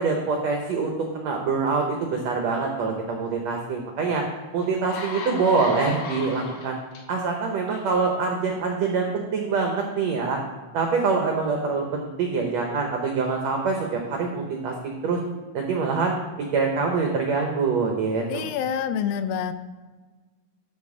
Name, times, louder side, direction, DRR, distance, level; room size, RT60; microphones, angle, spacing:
voice 1, 0.0-4.2 4.5-6.8 7.1-10.4 10.7-15.2 15.5-16.1 16.5-18.5, right 4 dB, 85° right, 2 dB, 1.5 m, -25 dB
sound 1, 4.1-4.2 4.6-7.0 7.7-7.9, left 4 dB, 55° left, 2.6 m, -35 dB
voice 2, 18.3-19.5, left 8 dB, 85° left, 11 dB, 2.3 m, -27 dB
12.5 x 4.3 x 4.9 m, 1.3 s
omnidirectional pair, 4.3 m